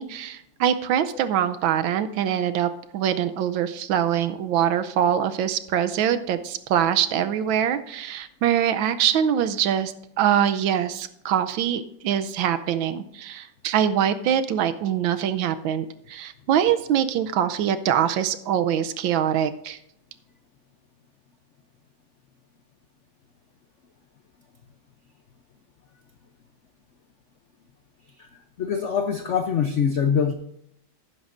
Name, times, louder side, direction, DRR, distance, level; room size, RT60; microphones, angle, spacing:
voice 1, 0.0-19.8, right 9 dB, 85° right, 11 dB, 1.4 m, -24 dB
voice 2, 28.6-30.3, left 7 dB, 65° left, 7 dB, 0.7 m, -23 dB
17.5 x 9.5 x 2.6 m, 0.75 s
omnidirectional pair, 2.2 m